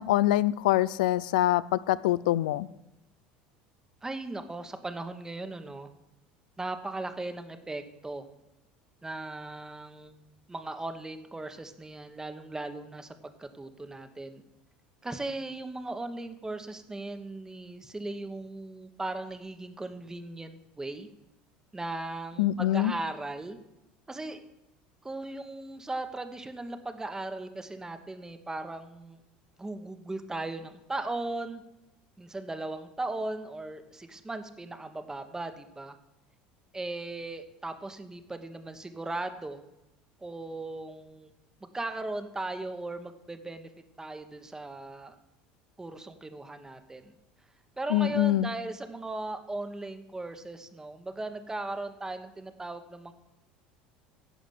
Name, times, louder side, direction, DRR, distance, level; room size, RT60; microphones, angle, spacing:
voice 1, 0.0-2.7 22.4-22.9 47.9-48.5, left 14 dB, 80° left, 19 dB, 0.3 m, -25 dB
voice 2, 4.0-5.9 6.6-8.2 9.0-10.1 10.5-13.1 13.4-14.4 15.0-21.1 21.7-23.6 24.1-24.4 25.0-29.2 29.6-31.6 32.2-35.9 36.7-39.6 40.2-41.3 41.6-43.7 44.0-45.1 45.8-47.1 47.8-53.1, right 2 dB, 15° right, 8 dB, 1.1 m, -37 dB
11.0 x 5.0 x 7.6 m, 0.93 s
hypercardioid pair, 85°, 4 cm